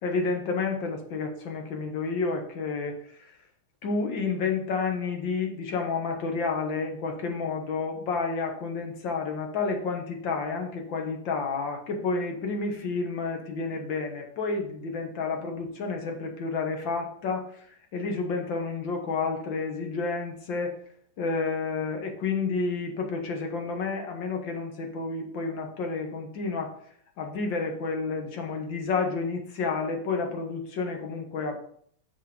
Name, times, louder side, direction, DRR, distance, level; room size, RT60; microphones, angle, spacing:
voice 1, 0.0-3.4 3.8-20.7 21.2-26.7 27.2-31.6, left 4 dB, 65° left, 3 dB, 1.9 m, -30 dB
6.4 x 6.0 x 5.0 m, 0.62 s
omnidirectional pair, 2.3 m